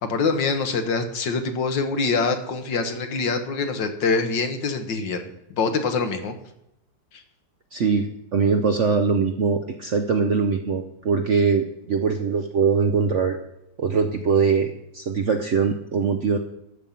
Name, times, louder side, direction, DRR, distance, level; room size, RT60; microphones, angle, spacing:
voice 1, 0.0-5.3 5.6-6.4, left 4 dB, 75° left, 6 dB, 1.8 m, -24 dB
voice 2, 7.7-13.4 13.8-16.4, right 5 dB, 60° right, 5 dB, 0.8 m, -22 dB
13.0 x 5.3 x 7.2 m, 0.82 s
omnidirectional pair, 2.0 m